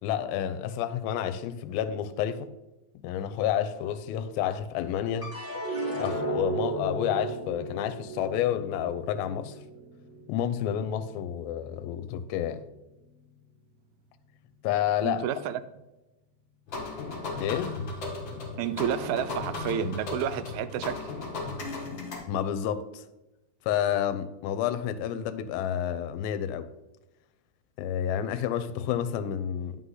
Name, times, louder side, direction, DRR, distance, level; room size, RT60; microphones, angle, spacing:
voice 1, 0.0-2.5 3.0-5.3 6.0-9.6 10.3-12.6 14.6-15.2 17.4-17.7 22.3-23.0 23.6-26.7 27.8-29.8, left 10 dB, 80° left, 2.4 m, -29 dB
sound 1, 5.2-11.6 12.1-12.8, right 3 dB, 5° left, 1.2 m, -36 dB
voice 2, 15.0-15.6 18.6-21.0, right 9 dB, 90° right, 2.5 m, -30 dB
sound 2, 16.7-22.2, left 3 dB, 45° left, 1.6 m, -35 dB
9.7 x 5.7 x 3.8 m
omnidirectional pair, 4.3 m